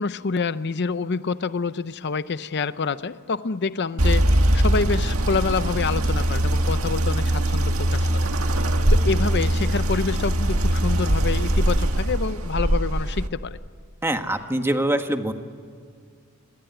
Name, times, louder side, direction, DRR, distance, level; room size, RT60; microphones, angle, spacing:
voice 1, 0.0-8.3 8.9-13.6, left 4 dB, 55° left, 13 dB, 0.6 m, -27 dB
sound 1, 4.0-13.3, right 1 dB, 85° right, 1.8 m, -21 dB
voice 2, 14.0-15.3, right 1 dB, 10° right, 6 dB, 1.5 m, -24 dB
27.5 x 21.5 x 9.3 m, 2.2 s
head